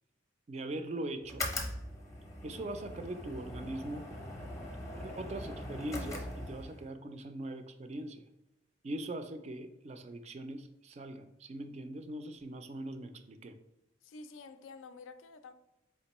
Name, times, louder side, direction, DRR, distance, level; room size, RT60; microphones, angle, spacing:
voice 1, 0.5-1.5 2.4-4.1 4.9-8.2 8.8-13.6, right 1 dB, 35° right, 0.3 m, -41 dB
sound 1, 1.2-6.9, left 1 dB, 15° left, 0.6 m, -41 dB
voice 2, 14.0-15.5, left 4 dB, 85° left, 0.4 m, -49 dB
4.3 x 3.5 x 2.9 m
head